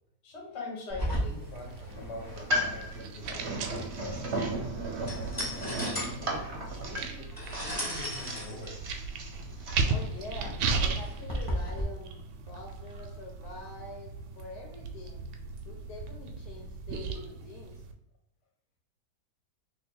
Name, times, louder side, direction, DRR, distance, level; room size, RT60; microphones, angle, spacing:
voice 1, 0.2-4.6 5.5-7.3 7.6-8.8, left 3 dB, 45° left, 0 dB, 1.1 m, -44 dB
sound 1, 0.9-11.8, equal, 15° left, 0.8 m, -37 dB
sound 2, 1.0-17.9, right 4 dB, 80° right, 1.1 m, -37 dB
sound 3, 2.2-9.9, right 1 dB, 50° right, 0.9 m, -36 dB
voice 2, 9.6-15.2 15.7-17.7, left 2 dB, 70° left, 0 dB, 1.2 m, -45 dB
2.8 x 2.7 x 4.4 m, 0.79 s
omnidirectional pair, 1.8 m